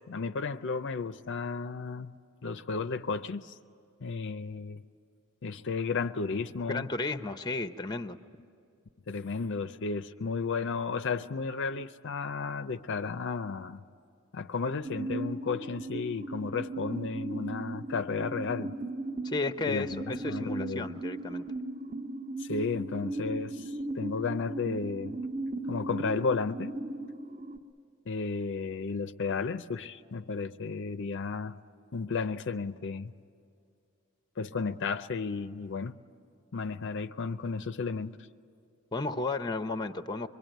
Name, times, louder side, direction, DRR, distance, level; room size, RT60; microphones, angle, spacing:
voice 1, 0.1-2.1 2.4-3.6 4.0-4.8 5.4-6.9 9.1-13.8 14.3-18.7 19.7-21.0 22.4-25.1 25.7-26.8 28.1-31.6 31.9-33.1 34.4-36.0 36.5-38.2, left 4 dB, 55° left, 0.5 m, -33 dB
voice 2, 6.7-8.2 19.2-21.4 38.9-40.3, left 3 dB, 20° left, 0.7 m, -33 dB
sound 1, 14.8-27.6, right 2 dB, 35° right, 1.2 m, -37 dB
25.0 x 23.5 x 9.1 m
head